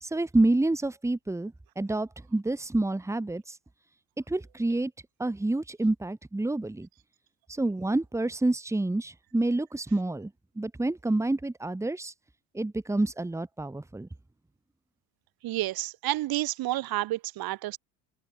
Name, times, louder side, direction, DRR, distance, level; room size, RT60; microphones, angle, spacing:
voice 1, 0.0-3.6 4.3-4.9 5.2-6.9 7.5-10.3 10.6-12.1 12.5-14.1, right 2 dB, 5° right, 3.0 m, -28 dB
voice 2, 15.4-17.8, right 16 dB, 55° right, 4.5 m, -30 dB
open air
cardioid pair, 145°, 42 cm